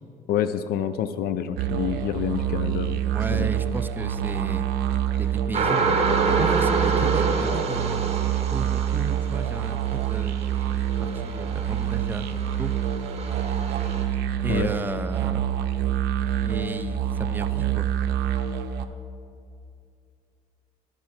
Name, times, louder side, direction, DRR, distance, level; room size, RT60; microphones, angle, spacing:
voice 1, 0.3-3.0 3.3-3.5 14.5-14.7, left 9 dB, 65° left, 12 dB, 0.4 m, -27 dB
sound 1, 1.6-18.8, right 10 dB, 85° right, 0.5 m, -26 dB
voice 2, 3.1-4.7 5.2-6.0 6.4-8.1 8.5-12.7 14.4-15.5 16.4-17.9, right 3 dB, 10° right, 9 dB, 0.4 m, -34 dB
sound 2, 5.5-14.0, right 4 dB, 40° right, 1.0 m, -28 dB
10.5 x 4.7 x 5.9 m, 2.5 s
cardioid pair, 110°, 17 cm